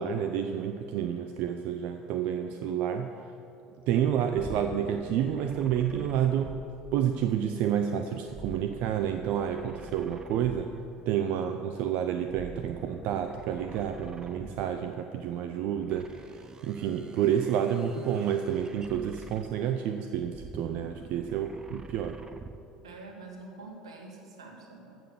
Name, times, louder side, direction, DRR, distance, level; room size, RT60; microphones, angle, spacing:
voice 1, 0.0-3.1 3.9-6.6 6.9-10.7 11.1-16.1 16.6-22.2, right 9 dB, 55° right, 7 dB, 0.5 m, -29 dB
sound 1, 4.3-7.4 8.3-11.0 12.3-14.9 15.8-19.8 20.2-22.7, right 3 dB, 25° right, 0.8 m, -46 dB
voice 2, 22.8-25.0, right 3 dB, 80° right, 1 dB, 1.7 m, -46 dB
14.0 x 6.1 x 7.1 m, 2.7 s
figure-of-eight pair, 65°, 3 cm